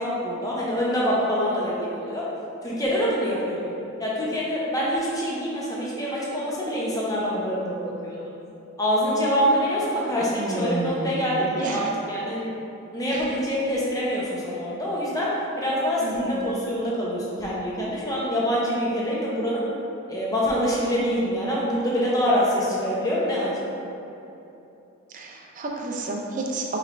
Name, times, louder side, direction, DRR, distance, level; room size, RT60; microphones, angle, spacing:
voice 1, 0.0-2.2 2.6-3.7 4.0-8.2 8.8-12.5 12.9-15.3 15.6-19.6 20.1-23.5, equal, 15° left, -6 dB, 0.7 m, -25 dB
voice 2, 10.4-11.8 13.1-13.3 16.0-16.5 25.1-26.8, right 2 dB, 35° right, -1 dB, 0.4 m, -31 dB
5.2 x 3.2 x 2.5 m, 2.9 s
head